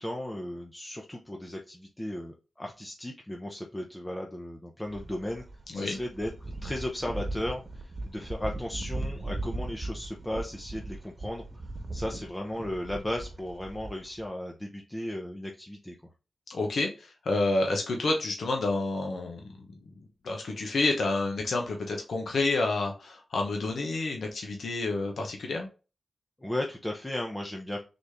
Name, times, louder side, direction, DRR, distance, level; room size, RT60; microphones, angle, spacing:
voice 1, 0.0-5.4 5.7-6.3 6.6-11.4 11.9-16.0 26.4-27.8, left 1 dB, 15° left, 1 dB, 0.7 m, -35 dB
sound 1, 4.9-14.3, right 2 dB, 35° right, 1.3 m, -38 dB
voice 2, 16.5-19.7 20.2-25.7, left 2 dB, 75° left, 1 dB, 0.9 m, -29 dB
4.0 x 3.3 x 3.5 m, 0.33 s
cardioid pair, 65°, 0 cm